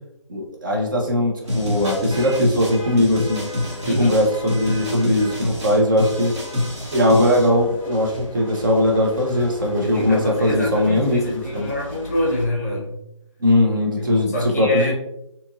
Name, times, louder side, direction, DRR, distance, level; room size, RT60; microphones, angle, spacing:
voice 1, 0.3-3.4 4.0-6.3 6.9-11.7 13.4-14.9, left 1 dB, 40° right, -1 dB, 0.6 m, -20 dB
sound 1, 1.4-12.5, left 1 dB, 85° right, 1.3 m, -37 dB
sound 2, 1.5-7.5, left 1 dB, 60° right, 1.1 m, -27 dB
voice 2, 3.8-4.2 9.8-13.0 14.0-14.9, left 1 dB, 30° left, -3 dB, 0.5 m, -25 dB
2.8 x 2.5 x 2.4 m, 0.83 s
figure-of-eight pair, 155°, 17 cm